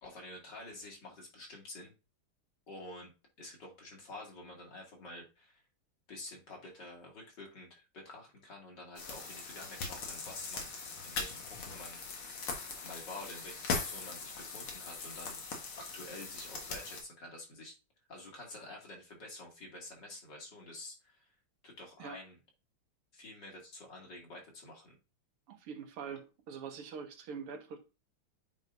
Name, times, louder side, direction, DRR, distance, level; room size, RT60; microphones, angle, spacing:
voice 1, 0.0-1.9 2.7-3.1 3.4-5.6 6.1-10.7 11.0-12.0 12.8-15.4 15.8-17.7 18.1-21.3 21.6-22.4 23.1-25.0, left 2 dB, 55° left, 3.0 m, -49 dB
sound 1, 9.0-17.0, left 4 dB, 75° left, 2.4 m, -40 dB
voice 2, 25.5-27.8, right 6 dB, 85° right, 2.1 m, -44 dB
9.1 x 5.0 x 2.6 m
omnidirectional pair, 2.4 m